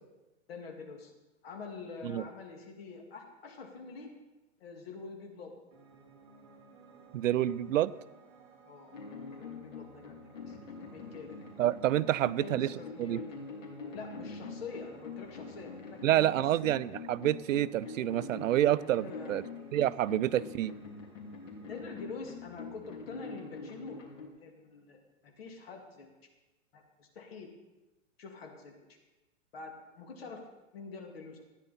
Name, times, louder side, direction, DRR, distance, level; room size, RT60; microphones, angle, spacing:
voice 1, 0.5-1.1 1.4-4.1 4.6-5.5 8.6-8.9 9.3-11.4 12.2-13.2 13.9-16.4 18.9-19.4 21.7-24.0 24.4-25.0 25.2-26.1 26.7-27.5 28.2-28.7 29.5-30.4 30.7-31.4, left 4 dB, 50° left, 2 dB, 2.3 m, -46 dB
Piano, 5.7-21.8, right 4 dB, 30° right, 1.6 m, -58 dB
voice 2, 7.1-7.9 11.6-12.7 13.0-13.2 16.0-19.4 19.7-20.7, right 13 dB, 80° right, 18 dB, 0.5 m, -28 dB
sound 1, 8.9-24.3, left 4 dB, 75° left, 3.3 m, -45 dB
14.5 x 9.8 x 4.2 m, 1.1 s
hypercardioid pair, 175°, 39 cm